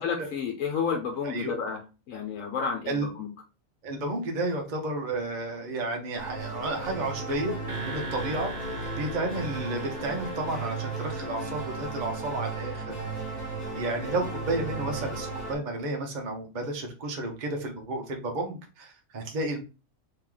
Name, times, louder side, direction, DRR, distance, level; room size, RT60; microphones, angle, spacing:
voice 1, 0.0-1.8 2.1-3.3, left 6 dB, 75° left, 2 dB, 1.0 m, -31 dB
voice 2, 1.2-1.6 2.9-3.1 3.8-8.5 9.0-13.0 13.7-19.6, right 2 dB, 40° right, 2 dB, 0.8 m, -32 dB
sound 1, 6.2-15.6, right 3 dB, 45° left, 1.9 m, -35 dB
sound 2, 7.7-12.6, right 2 dB, 65° right, 1.1 m, -42 dB
3.0 x 2.9 x 3.7 m, 0.32 s
omnidirectional pair, 1.4 m